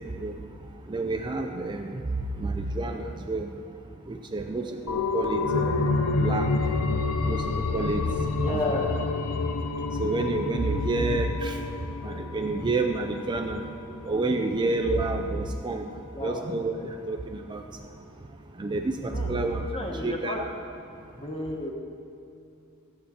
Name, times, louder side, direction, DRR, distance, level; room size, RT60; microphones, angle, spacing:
voice 1, 0.9-2.0 2.4-3.5 4.1-5.7 6.2-6.6 7.3-7.4 7.7-8.7 10.0-11.6 12.0-13.6 14.0-15.8 16.2-16.7 17.1-17.6 18.6-19.6 20.0-20.5, right 2 dB, 20° right, 4 dB, 0.4 m, -29 dB
sound 1, 4.9-14.2 14.6-14.7, left 3 dB, 80° left, 0.6 m, -29 dB
voice 2, 8.4-9.1 16.1-16.5 16.8-17.0 19.1-19.3 19.6-20.4 21.2-21.7, left 1 dB, 25° left, 1 dB, 1.1 m, -32 dB
13.0 x 8.6 x 4.2 m, 2.6 s
head